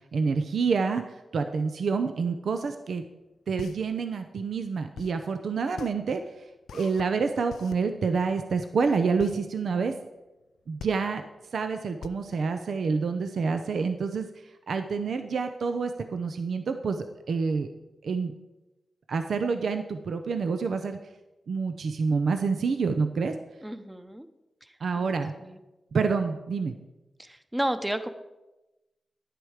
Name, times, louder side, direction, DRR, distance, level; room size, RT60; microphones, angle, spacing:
voice 1, 0.1-3.0 3.5-6.2 6.7-9.9 10.7-11.2 11.5-14.3 14.7-17.7 18.0-18.3 19.1-21.0 21.5-23.3 24.8-25.3 25.9-26.7, right 5 dB, 75° right, 7 dB, 0.6 m, -27 dB
sound 1, 3.1-13.4, left 7 dB, 90° left, 0.3 m, -45 dB
voice 2, 23.6-24.3 24.6-25.1 25.4-25.6 27.2-28.1, right 1 dB, 10° right, 10 dB, 0.9 m, -32 dB
10.0 x 7.7 x 4.9 m, 1.0 s
cardioid pair, 45°, 0 cm